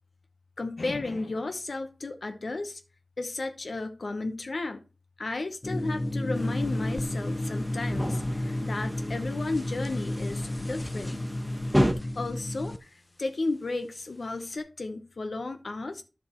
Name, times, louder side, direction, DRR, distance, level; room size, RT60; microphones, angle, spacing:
voice 1, 0.6-2.8 3.2-4.8 5.2-11.2 12.1-16.0, left 3 dB, 70° left, 0.8 m, -33 dB
sound 1, 5.6-12.8, left 1 dB, 30° left, 0.4 m, -32 dB
sound 2, 6.3-11.9, equal, ahead, 1.3 m, -32 dB
10.5 x 7.0 x 2.9 m
wide cardioid pair, 85°, 0 cm